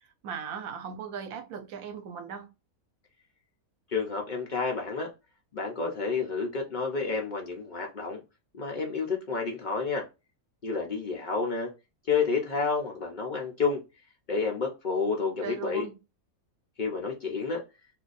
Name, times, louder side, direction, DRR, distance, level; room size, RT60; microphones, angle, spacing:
voice 1, 0.2-2.5 15.4-16.0, right 6 dB, 70° right, 1.1 m, -38 dB
voice 2, 3.9-5.1 5.5-8.2 8.6-10.0 10.6-11.7 12.1-13.8 14.3-15.8 16.8-17.6, left 4 dB, 85° left, 0.4 m, -30 dB
2.6 x 2.5 x 3.8 m
omnidirectional pair, 1.6 m